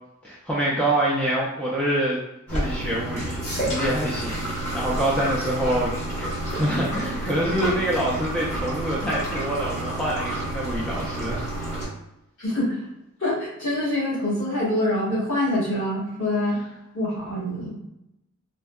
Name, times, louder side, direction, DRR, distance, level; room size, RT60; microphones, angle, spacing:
voice 1, 0.2-2.2 2.5-11.8, right 1 dB, 5° left, -6 dB, 0.4 m, -26 dB
sound 1, 2.5-11.9, right 1 dB, 35° left, 1.2 m, -29 dB
voice 2, 12.4-12.8 13.2-16.6 16.9-17.7, left 1 dB, 55° left, -7 dB, 1.4 m, -25 dB
3.5 x 2.1 x 2.2 m, 0.89 s
head